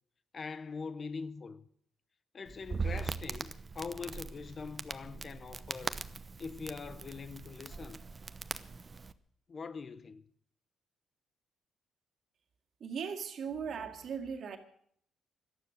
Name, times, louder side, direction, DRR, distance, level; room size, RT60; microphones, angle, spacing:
voice 1, 0.3-1.6 2.3-6.0 6.4-8.0 9.5-10.2, left 5 dB, 40° left, 0.9 m, -43 dB
Crackle, 2.5-9.1, right 4 dB, 30° right, 0.8 m, -41 dB
voice 2, 12.8-14.6, right 6 dB, 60° right, 2.1 m, -38 dB
17.5 x 12.5 x 6.5 m
cardioid pair, 90°, 0 cm